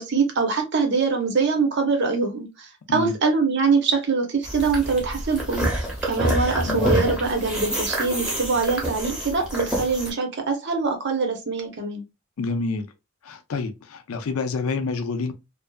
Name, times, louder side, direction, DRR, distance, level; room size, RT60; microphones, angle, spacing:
voice 1, 0.0-5.7 6.0-12.0, right 4 dB, 55° right, 0.7 m, -23 dB
sound 1, 4.4-10.1, right 1 dB, 5° right, 0.7 m, -27 dB
voice 2, 6.6-7.0 12.4-12.9 13.2-15.3, left 3 dB, 80° left, 0.4 m, -28 dB
2.6 x 2.4 x 2.2 m
head